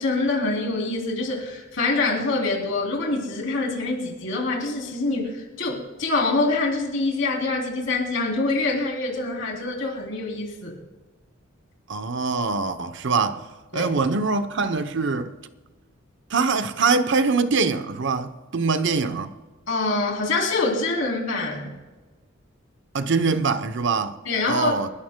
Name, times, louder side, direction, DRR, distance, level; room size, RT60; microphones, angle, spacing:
voice 1, 0.0-10.7 13.7-13.9 19.7-21.7 24.2-24.8, left 3 dB, 65° left, 3.2 m, -25 dB
voice 2, 11.9-13.5 13.7-15.3 16.3-19.3 22.9-24.2 24.5-24.9, right 4 dB, 60° right, 0.8 m, -23 dB
29.5 x 12.5 x 2.2 m
head